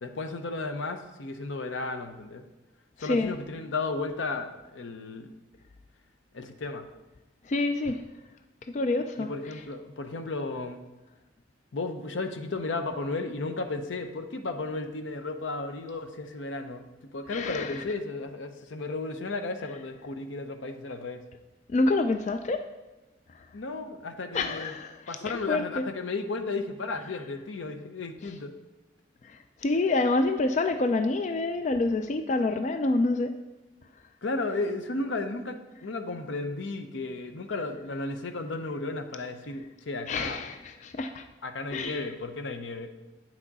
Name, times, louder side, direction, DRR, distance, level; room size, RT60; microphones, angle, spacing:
voice 1, 0.0-2.4 3.0-5.3 6.3-6.9 9.2-10.8 11.7-16.8 17.1-21.2 23.5-24.7 25.1-28.5 34.2-40.4 41.4-42.9, left 3 dB, 90° left, 8 dB, 0.7 m, -34 dB
voice 2, 3.0-3.3 7.5-8.0 8.7-9.3 17.3-17.8 21.7-22.7 24.3-25.8 29.2-29.4 29.6-33.3 40.1-41.2 41.7-42.0, left 2 dB, 40° left, 8 dB, 0.3 m, -27 dB
8.8 x 6.0 x 4.0 m, 1.1 s
head